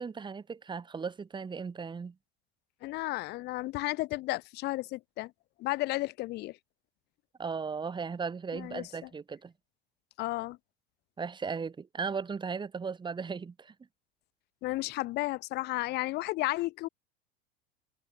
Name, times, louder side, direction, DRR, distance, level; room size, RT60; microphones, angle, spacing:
voice 1, 0.0-2.1 7.4-9.5 11.2-13.7, right 5 dB, 15° right, 1.6 m, -36 dB
voice 2, 2.8-5.3 5.6-6.6 8.5-9.1 10.2-10.6 14.6-16.9, left 19 dB, 35° left, 0.7 m, -33 dB
figure-of-eight pair, 80°, 31 cm